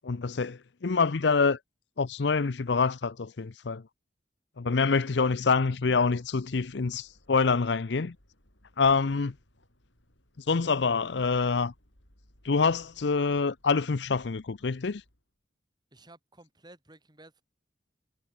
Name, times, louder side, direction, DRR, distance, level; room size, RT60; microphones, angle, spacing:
voice 1, 0.0-1.6 2.0-3.8 4.6-8.2 8.8-9.3 10.4-11.7 12.4-15.0, left 4 dB, 70° left, 0.6 m, -26 dB
sound 1, 5.8-15.3, equal, 90° left, 7.2 m, -63 dB
voice 2, 15.9-17.4, right 2 dB, 25° right, 3.9 m, -54 dB
head